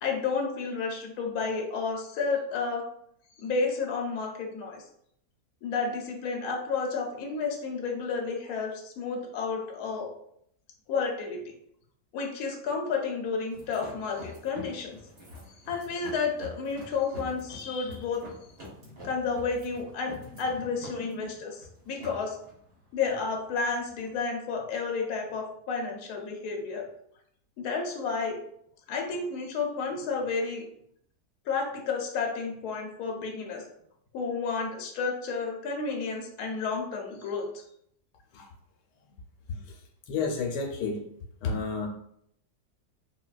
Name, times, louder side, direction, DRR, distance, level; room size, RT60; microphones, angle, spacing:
voice 1, 0.0-2.9 3.4-4.8 5.6-10.1 10.9-11.4 12.1-15.0 15.7-18.2 19.0-22.4 22.9-26.8 27.6-28.4 28.9-30.7 31.5-33.6 34.1-37.6, left 4 dB, 70° left, 1 dB, 1.1 m, -31 dB
sound 1, 13.5-24.2, left 1 dB, 45° right, 1.2 m, -47 dB
voice 2, 39.5-41.0 41.4-41.9, left 4 dB, 85° left, 2 dB, 1.2 m, -32 dB
3.8 x 2.2 x 2.3 m, 0.70 s
omnidirectional pair, 1.7 m